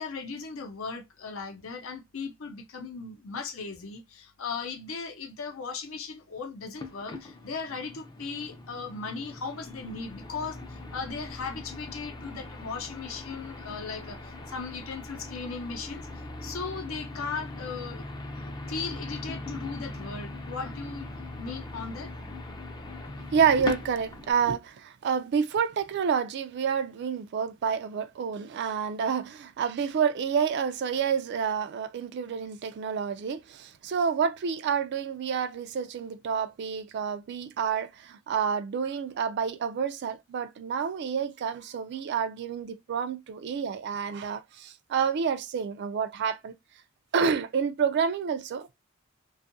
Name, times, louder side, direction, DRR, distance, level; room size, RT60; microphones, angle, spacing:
voice 1, 0.0-16.0 16.4-18.1 18.7-21.1 21.4-22.1, left 4 dB, 75° left, 0.6 m, -37 dB
sound 1, 6.8-24.3, left 2 dB, 20° left, 0.4 m, -40 dB
voice 2, 23.3-46.5 47.1-48.7, right 6 dB, 55° right, 0.3 m, -29 dB
2.6 x 2.3 x 2.5 m
head